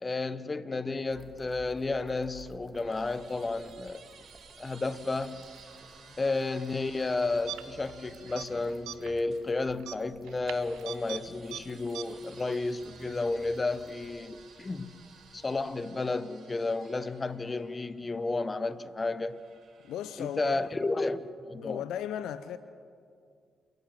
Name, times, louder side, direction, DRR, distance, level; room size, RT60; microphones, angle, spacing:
voice 1, 0.0-4.0 4.6-5.5 6.2-15.0 15.3-19.4 20.2-21.8, left 3 dB, 30° left, 1.1 m, -32 dB
sound 1, 1.1-15.9, right 3 dB, 35° right, 2.8 m, -57 dB
sound 2, 2.4-9.5 10.5-18.4 19.3-20.9, right 5 dB, 60° right, 4.3 m, -55 dB
sound 3, 7.5-8.0 8.3-8.5 8.9-9.2 9.8-11.2 11.5-11.6 11.9-12.0, right 14 dB, 80° right, 0.8 m, -40 dB
voice 2, 19.8-20.6 21.6-22.6, left 10 dB, 75° left, 0.6 m, -36 dB
28.0 x 11.0 x 9.1 m
hypercardioid pair, 45°, 0 cm